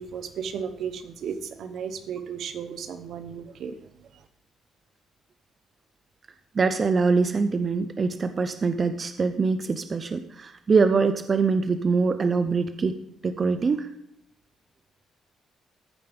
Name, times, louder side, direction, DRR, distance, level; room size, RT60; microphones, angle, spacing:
voice 1, 0.0-3.7, right 7 dB, 70° right, 10 dB, 0.8 m, -34 dB
voice 2, 6.5-13.9, right 4 dB, 40° right, 9 dB, 0.5 m, -24 dB
14.5 x 5.2 x 3.4 m, 0.76 s
cardioid pair, 90°, 0 cm